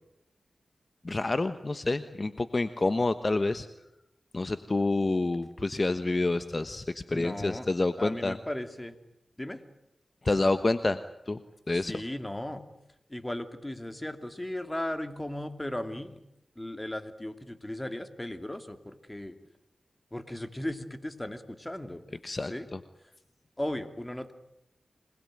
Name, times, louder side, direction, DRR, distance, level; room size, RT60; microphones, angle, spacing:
voice 1, 1.0-3.7 4.3-8.4 10.2-11.0 11.3-11.4 11.7-11.9 22.2-22.8, left 2 dB, 40° left, 11 dB, 1.2 m, -28 dB
voice 2, 7.1-7.7 8.0-9.0 9.4-9.6 11.7-12.6 13.1-16.2 16.6-19.4 20.1-22.0 22.5-22.7 23.6-24.3, left 1 dB, 15° left, 9 dB, 2.7 m, -36 dB
27.0 x 21.0 x 9.1 m, 0.84 s
cardioid pair, 50°, 0 cm